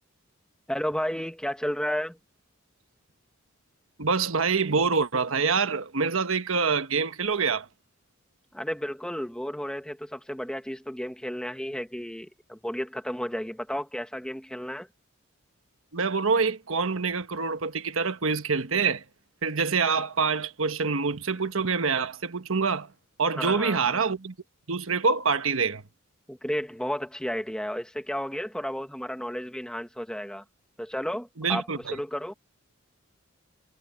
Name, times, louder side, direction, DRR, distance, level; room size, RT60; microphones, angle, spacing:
voice 1, 0.7-2.2 8.5-14.9 23.4-23.8 26.3-30.4 30.8-32.3, equal, 5° left, 1.8 m, -32 dB
voice 2, 4.0-7.7 15.9-19.0 19.4-22.9 23.2-24.3 24.7-25.8 31.4-31.9, right 5 dB, 80° right, 1.3 m, -26 dB
head